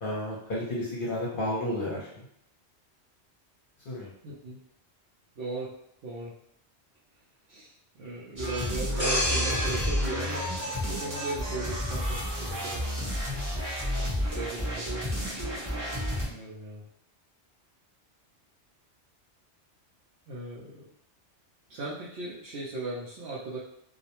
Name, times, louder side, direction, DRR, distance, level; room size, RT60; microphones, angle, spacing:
voice 1, 0.0-2.2 3.8-4.1 15.1-15.5, left 1 dB, 55° left, -7 dB, 0.8 m, -32 dB
voice 2, 4.2-4.6 5.3-5.7 6.0-6.3 7.5-13.0 13.9-15.5 16.0-16.8 20.3-20.9 21.7-23.6, right 2 dB, 65° right, -7 dB, 0.8 m, -38 dB
sound 1, 8.4-16.3, equal, 20° right, 0.8 m, -31 dB
sound 2, 9.0-11.7 12.1-12.4, left 1 dB, 10° left, 0.9 m, -31 dB
2.4 x 2.1 x 2.9 m, 0.72 s
omnidirectional pair, 1.2 m